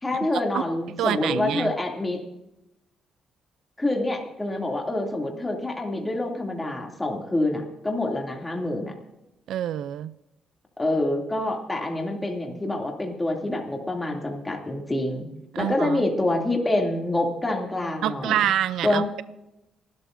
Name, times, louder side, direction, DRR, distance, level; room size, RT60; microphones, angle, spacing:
voice 1, 0.0-2.2 3.8-8.9 10.8-15.2 15.6-18.4 18.8-19.0, left 1 dB, 15° left, 1 dB, 2.6 m, -26 dB
voice 2, 1.0-1.7 9.5-10.1 15.5-16.0 18.0-19.2, right 11 dB, 80° right, 15 dB, 0.4 m, -26 dB
29.0 x 12.5 x 2.6 m, 0.89 s
cardioid pair, 90°, 0 cm